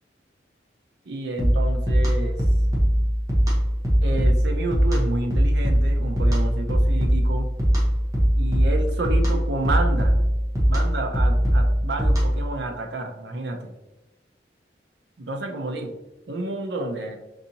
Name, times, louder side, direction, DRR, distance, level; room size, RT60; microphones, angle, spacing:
voice 1, 1.1-2.4 4.0-7.5 8.4-10.2 10.7-13.7 15.2-15.9 16.3-17.2, right 2 dB, 80° right, 3 dB, 0.6 m, -30 dB
sound 1, 1.4-12.5, equal, 20° right, 0.9 m, -21 dB
4.1 x 2.7 x 2.8 m, 0.96 s
head